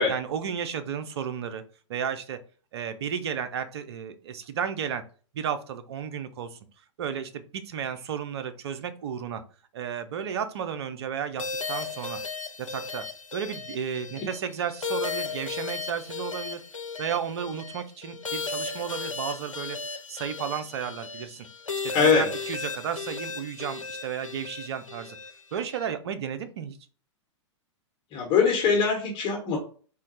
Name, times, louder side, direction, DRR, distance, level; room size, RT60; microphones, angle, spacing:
voice 1, 0.0-1.6 1.9-2.4 2.7-5.0 5.3-6.6 7.0-9.4 9.7-11.4 11.7-12.2 12.6-13.0 13.3-16.6 17.0-19.8 20.1-21.5 21.8-25.2 25.5-26.8, right 8 dB, 55° right, 10 dB, 0.6 m, -33 dB
sound 1, 11.4-25.9, left 4 dB, 90° left, 0.5 m, -36 dB
voice 2, 21.9-22.3 28.1-29.6, left 5 dB, 30° left, 0 dB, 1.1 m, -22 dB
3.7 x 2.2 x 4.0 m, 0.41 s
figure-of-eight pair, 110°, 16 cm